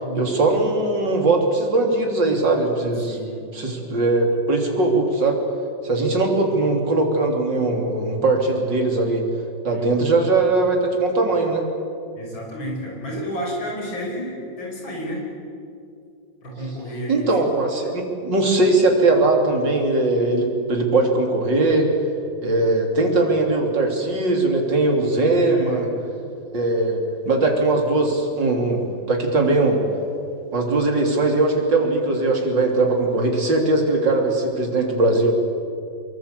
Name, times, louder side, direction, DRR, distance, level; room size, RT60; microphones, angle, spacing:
voice 1, 0.1-3.2 3.5-5.4 5.8-9.2 9.6-11.7 17.1-21.9 22.4-25.9 26.5-28.8 29.1-29.8 30.5-35.3, right 2 dB, 60° right, 2 dB, 4.0 m, -20 dB
voice 2, 3.1-3.4 9.7-10.2 12.2-15.3 16.4-17.3 25.3-25.9, equal, 75° left, -1 dB, 6.9 m, -31 dB
24.5 x 22.5 x 8.5 m, 2.5 s
omnidirectional pair, 2.2 m